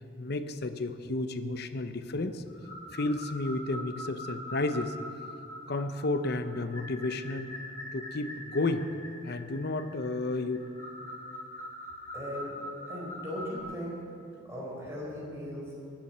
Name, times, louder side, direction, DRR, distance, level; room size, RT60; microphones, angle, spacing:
voice 1, 0.2-2.4 2.9-5.0 5.7-7.5 7.9-8.9 9.2-10.6, left 2 dB, 55° left, 10 dB, 0.8 m, -32 dB
sound 1, 2.5-13.6, left 1 dB, 15° left, 3.5 m, -43 dB
voice 2, 12.1-12.6 12.9-14.0 14.4-15.8, equal, 15° right, -5 dB, 4.0 m, -38 dB
20.0 x 7.3 x 7.3 m, 2.4 s
head